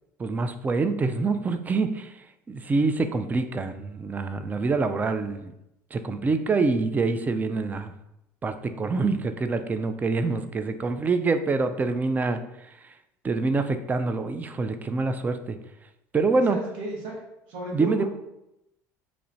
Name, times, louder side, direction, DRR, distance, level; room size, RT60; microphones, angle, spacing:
voice 1, 0.2-2.1 2.5-5.5 5.9-7.9 8.4-12.4 13.2-15.6 16.1-16.6 17.7-18.1, right 3 dB, 20° right, 9 dB, 0.4 m, -25 dB
voice 2, 16.5-17.2 17.5-18.1, right 1 dB, 75° right, -3 dB, 1.2 m, -34 dB
3.1 x 2.5 x 4.3 m, 0.87 s
supercardioid pair, 95°, 8 cm